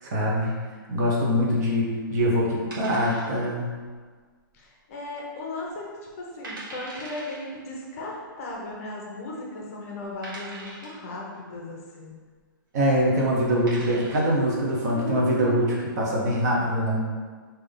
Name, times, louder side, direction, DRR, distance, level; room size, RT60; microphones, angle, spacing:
voice 1, 0.0-0.5 0.9-3.7 12.7-17.0, equal, 45° right, -3 dB, 0.9 m, -23 dB
sound 1, 2.7-3.7 3.9-4.0 4.6-5.1 5.4-5.5 6.1-6.2 6.4-7.4 8.5-8.6 9.3-9.4 10.2-11.1 12.9-13.1 13.5-14.3, right 2 dB, 70° right, 1.3 m, -41 dB
voice 2, 4.5-12.2 14.8-15.8, left 2 dB, 40° left, -2 dB, 0.8 m, -36 dB
3.4 x 2.7 x 3.8 m, 1.5 s
hypercardioid pair, 165°, 12 cm